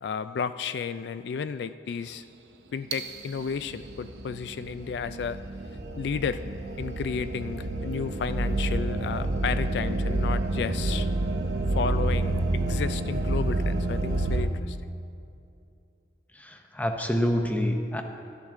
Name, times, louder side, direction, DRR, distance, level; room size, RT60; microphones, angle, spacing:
voice 1, 0.0-2.2 2.7-5.4 6.0-6.4 6.8-11.1 11.7-14.8, left 6 dB, 75° left, 12 dB, 0.3 m, -32 dB
sound 1, 2.9-14.5, right 2 dB, 80° right, 0.7 m, -29 dB
voice 2, 16.3-18.0, equal, 10° left, 4 dB, 0.7 m, -27 dB
13.0 x 12.0 x 3.7 m, 2.6 s
head